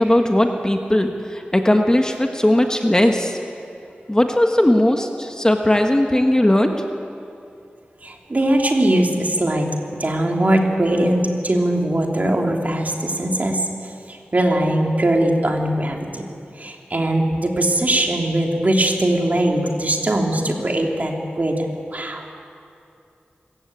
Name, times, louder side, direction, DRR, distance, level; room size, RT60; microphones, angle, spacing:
voice 1, 0.0-3.4 4.1-6.8, left 1 dB, 20° left, 4 dB, 1.5 m, -18 dB
voice 2, 8.0-9.7 10.0-13.7 14.1-16.2 16.6-22.3, right 1 dB, 45° right, 1 dB, 3.0 m, -20 dB
25.0 x 15.0 x 8.7 m, 2.5 s
wide cardioid pair, 65°, 4 cm